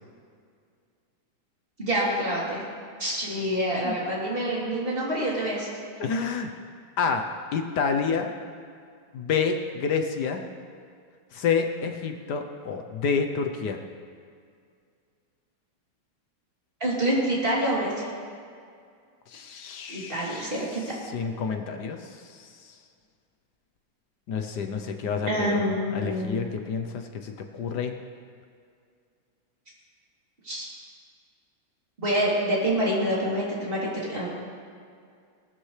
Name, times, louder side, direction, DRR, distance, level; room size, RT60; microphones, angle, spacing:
voice 1, 1.8-2.6 3.0-5.7 16.8-18.1 19.9-20.8 25.3-26.4 30.4-30.7 32.0-34.3, right 1 dB, 25° right, -6 dB, 3.4 m, -26 dB
voice 2, 6.0-6.5 7.0-7.2 7.5-8.3 9.1-10.4 11.3-13.8 19.3-20.5 21.1-22.0 22.3-22.5 24.3-25.6 25.9-27.9, left 5 dB, 65° left, 5 dB, 1.3 m, -28 dB
18.5 x 13.0 x 3.3 m, 2.2 s
omnidirectional pair, 2.1 m